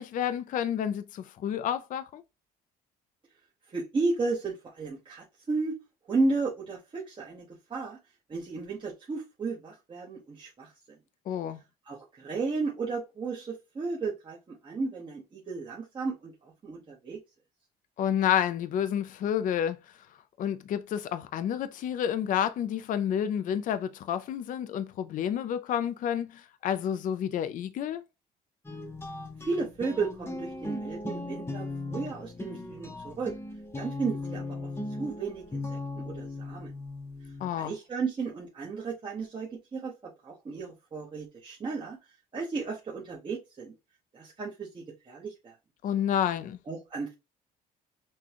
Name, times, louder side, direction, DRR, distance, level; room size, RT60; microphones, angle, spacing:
voice 1, 0.0-2.2 11.3-11.6 18.0-19.8 20.4-28.0 37.4-37.7 45.8-46.6, left 9 dB, 50° left, 0.5 m, -30 dB
voice 2, 3.7-5.8 6.1-8.0 8.3-11.0 11.9-17.2 29.4-33.3 33.7-34.7 35.0-36.7 37.5-42.0 42.3-43.7 44.1-45.5 46.7-47.1, right 3 dB, 30° right, 1.1 m, -34 dB
sound 1, 28.6-37.5, left 2 dB, 15° left, 0.8 m, -38 dB
6.1 x 2.3 x 2.9 m
cardioid pair, 110°, 17 cm